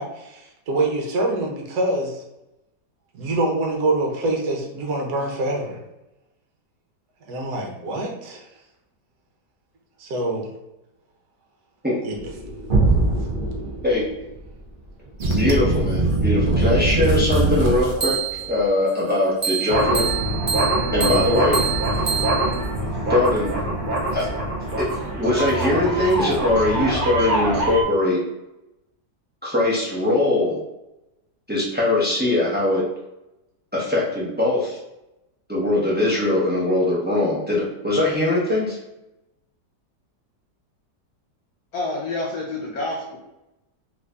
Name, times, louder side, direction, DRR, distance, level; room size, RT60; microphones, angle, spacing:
voice 1, 0.0-2.2 3.1-5.8 7.3-8.4 10.0-10.5 12.0-12.2 21.0-21.2, right 2 dB, 70° right, 0 dB, 1.3 m, -25 dB
sound 1, 12.1-18.7, right 2 dB, 50° right, 0.7 m, -26 dB
sound 2, 15.2-18.5 19.4-27.8, right 2 dB, 85° right, 0.4 m, -23 dB
voice 2, 15.3-18.2 18.5-20.1 20.9-21.6 23.1-23.5 24.1-24.3 24.8-24.9 25.2-28.2 29.4-30.6 31.5-32.8 33.7-34.8 35.5-38.8, left 2 dB, 10° right, -7 dB, 0.6 m, -21 dB
voice 3, 41.7-43.2, left 2 dB, 65° left, -4 dB, 1.3 m, -28 dB
3.2 x 2.6 x 3.3 m, 0.93 s
omnidirectional pair, 1.8 m